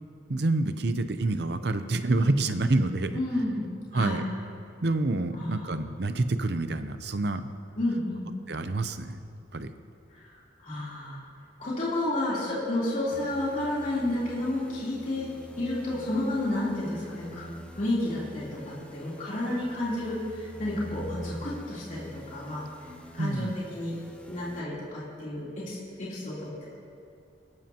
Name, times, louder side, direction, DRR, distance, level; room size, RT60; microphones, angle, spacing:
voice 1, 0.3-3.2 3.9-4.2 4.8-7.5 8.5-9.2 9.5-9.7 23.2-23.5, right 2 dB, 60° right, 10 dB, 0.7 m, -27 dB
voice 2, 3.1-3.6 3.9-4.2 5.4-5.8 7.8-8.3 10.6-11.2 11.6-15.3 15.6-17.5 17.7-22.6 23.1-24.0 24.3-26.7, left 1 dB, 40° left, -8 dB, 3.3 m, -31 dB
sound 1, 13.1-24.6, equal, 5° left, 0.7 m, -45 dB
22.5 x 13.0 x 2.9 m, 2.5 s
head